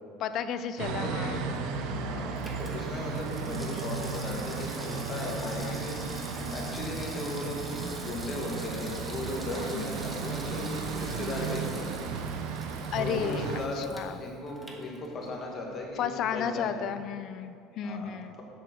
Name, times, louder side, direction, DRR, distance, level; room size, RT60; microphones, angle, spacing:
voice 1, 0.2-1.4 5.4-5.8 9.6-9.9 12.9-13.5 13.8-14.2 16.0-18.3, left 8 dB, 55° left, 11 dB, 0.6 m, -33 dB
sound 1, 0.8-13.7, right 5 dB, 70° right, 0.8 m, -35 dB
Water tap faucet / Sink (filling or washing), 1.2-15.5 15.8-15.9, equal, 5° right, 1.4 m, -46 dB
voice 2, 2.0-6.2 6.5-7.6 7.9-11.9 12.9-13.8 14.2-16.7 17.8-18.4, left 2 dB, 40° left, -1 dB, 1.8 m, -37 dB
7.8 x 6.7 x 6.3 m, 2.4 s
supercardioid pair, 110°, 0 cm